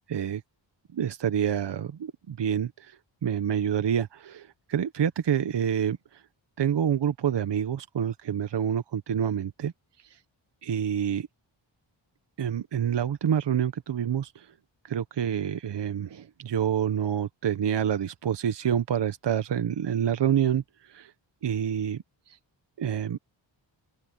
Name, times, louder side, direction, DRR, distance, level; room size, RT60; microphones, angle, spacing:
voice 1, 0.1-0.4 0.9-3.0 3.2-6.0 6.6-9.7 10.6-11.3 12.4-14.5 14.8-20.6 20.9-21.1 21.4-22.0 22.3-22.4 22.8-23.2, right 9 dB, 65° right, 0.9 m, -27 dB
open air
wide cardioid pair, 90°, 46 cm